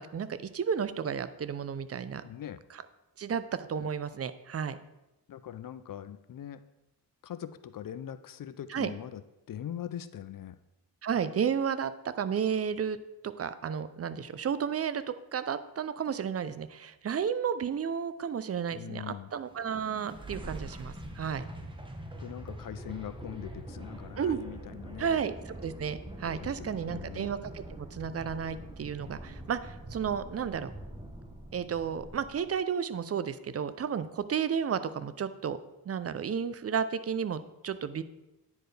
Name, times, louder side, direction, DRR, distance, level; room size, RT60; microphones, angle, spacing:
voice 1, 0.0-2.2 2.7-2.8 3.2-4.8 8.7-8.9 11.0-13.0 13.2-21.5 24.2-24.4 25.0-30.7 31.5-35.6 35.9-38.0, right 7 dB, 35° right, 14 dB, 0.4 m, -32 dB
voice 2, 2.2-2.6 5.3-6.6 7.2-9.2 9.5-10.6 18.7-19.3 22.2-25.2 26.4-27.3, left 10 dB, 50° left, 13 dB, 0.5 m, -41 dB
sound 1, 19.4-32.6, right 1 dB, 10° right, 0.9 m, -44 dB
9.5 x 4.5 x 3.3 m, 0.97 s
cardioid pair, 70°, 42 cm